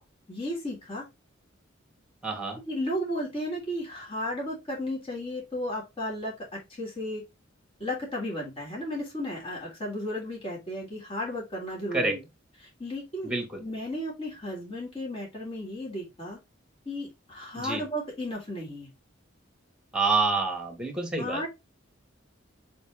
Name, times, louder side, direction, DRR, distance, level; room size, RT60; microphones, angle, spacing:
voice 1, 0.3-1.0 2.7-7.2 7.8-12.2 12.6-13.3 13.6-16.4 16.8-18.9 21.2-21.5, left 1 dB, 30° left, 3.1 m, -34 dB
voice 2, 2.2-2.6 11.9-12.2 13.2-13.6 17.6-17.8 19.9-21.4, right 3 dB, 5° right, 2.3 m, -27 dB
7.2 x 4.4 x 3.8 m
head